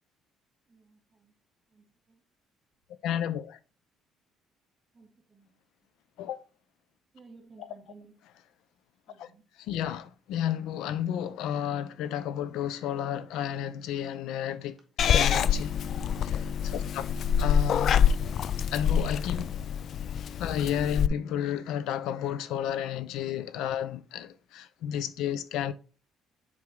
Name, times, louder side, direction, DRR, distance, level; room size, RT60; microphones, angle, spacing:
voice 1, 0.7-1.3 1.7-2.2 4.9-5.6 7.1-8.2 9.1-9.4 16.7-17.2, right 4 dB, 15° right, 2.4 m, -56 dB
voice 2, 3.0-3.6 6.2-6.4 9.2-9.3 9.7-14.8 15.1-15.7 16.2-17.0 17.4-18.1 18.7-19.5 20.4-25.7, left 9 dB, 80° left, 0.7 m, -32 dB
Purr / Meow, 15.0-21.1, left 8 dB, 50° left, 0.3 m, -26 dB
7.5 x 4.6 x 3.8 m
cardioid pair, 125°, 0 cm